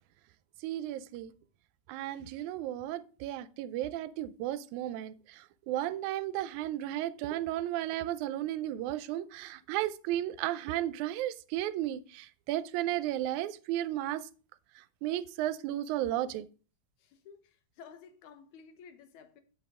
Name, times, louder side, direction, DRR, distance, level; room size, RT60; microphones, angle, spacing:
voice 1, 0.6-1.3 1.9-14.3 14.8-16.5, right 13 dB, 85° right, 1.9 m, -34 dB
voice 2, 17.0-19.4, left 6 dB, 80° left, 2.3 m, -53 dB
8.2 x 7.3 x 3.6 m
omnidirectional pair, 3.4 m